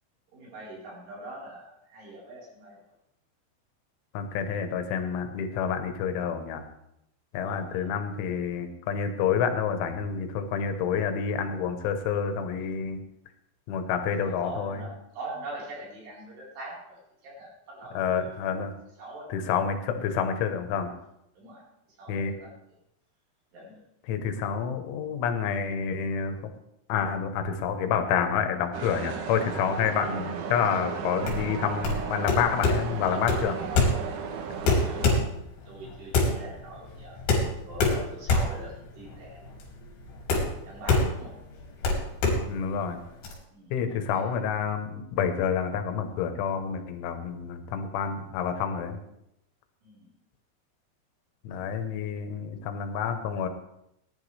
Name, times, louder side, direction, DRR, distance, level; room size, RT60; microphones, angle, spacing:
voice 1, 0.3-2.9 7.4-7.9 14.2-18.4 19.0-19.3 21.4-22.8 23.5-23.8 34.4-35.3 35.6-37.2 37.6-39.4 40.6-41.4 43.5-44.4 49.8-50.1, right 1 dB, 60° right, -5 dB, 6.4 m, -43 dB
voice 2, 4.2-6.6 7.3-13.0 13.7-14.8 18.0-18.7 19.3-20.9 22.1-22.3 24.1-26.4 26.9-33.6 42.5-43.0 43.7-49.0 51.5-53.5, left 7 dB, 90° left, 7 dB, 3.6 m, -28 dB
sound 1, 28.7-35.2, right 6 dB, 90° right, 1.8 m, -35 dB
sound 2, 31.2-43.3, left 3 dB, 70° left, 4.9 m, -26 dB
19.0 x 11.0 x 3.4 m, 0.81 s
omnidirectional pair, 5.3 m